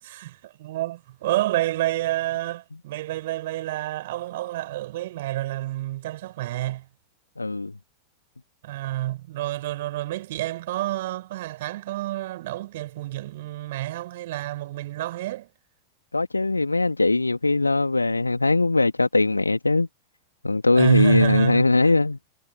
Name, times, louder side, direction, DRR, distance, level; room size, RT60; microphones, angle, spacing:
voice 1, 0.0-6.9 8.6-15.5 20.7-21.7, right 16 dB, 55° right, 6.0 m, -28 dB
voice 2, 7.4-7.7 16.1-19.9 20.4-22.2, left 3 dB, 80° left, 1.8 m, -20 dB
figure-of-eight pair, 90°, 0 cm